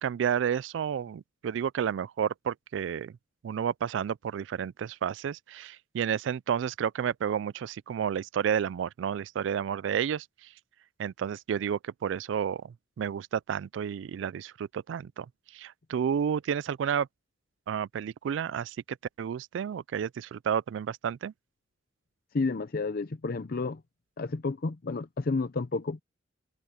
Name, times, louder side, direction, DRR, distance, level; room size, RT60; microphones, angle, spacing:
voice 1, 0.0-3.1 3.4-10.3 11.0-15.3 15.5-17.1 17.7-18.8 19.2-21.3, right 8 dB, 75° right, 0.3 m, -31 dB
voice 2, 22.3-23.8 24.2-26.0, left 3 dB, 50° left, 0.6 m, -31 dB
head